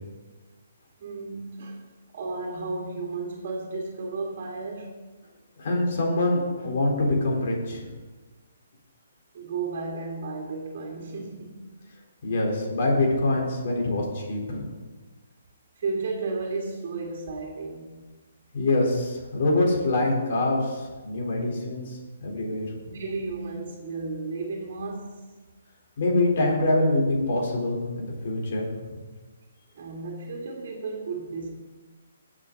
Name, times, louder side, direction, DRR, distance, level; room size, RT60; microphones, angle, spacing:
voice 1, 1.0-1.8 2.1-5.0 9.3-11.6 15.8-18.0 21.0-21.1 22.8-25.2 29.7-31.5, right 3 dB, 50° right, 2.0 m, -33 dB
voice 2, 5.6-7.9 12.2-14.7 18.5-22.7 26.0-28.7, left 2 dB, 55° left, 3.9 m, -25 dB
18.0 x 7.6 x 4.0 m
hypercardioid pair, 155°, 0 cm